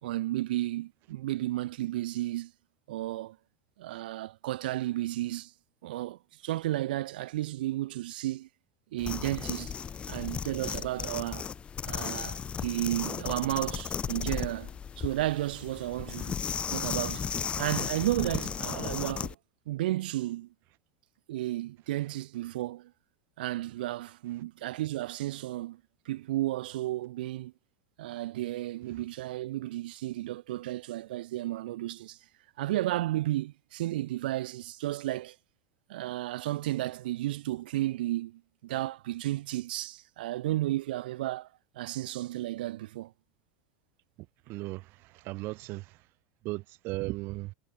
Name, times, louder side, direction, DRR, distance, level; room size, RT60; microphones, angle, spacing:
voice 1, 0.0-2.5 2.9-3.4 3.8-5.5 5.8-8.5 8.9-9.8 10.1-11.5 11.9-14.7 15.0-16.4 16.7-17.3 17.6-19.4 19.6-20.5 21.3-22.9 23.4-25.8 26.0-27.5 28.0-32.2 32.6-35.3 35.9-41.5 41.7-43.1, right 15 dB, 85° right, 1.7 m, -33 dB
sound 1, 9.0-19.3, left 7 dB, 20° left, 1.4 m, -35 dB
voice 2, 44.5-46.0 46.4-47.5, right 21 dB, 50° right, 1.0 m, -37 dB
supercardioid pair, 140°, 5 cm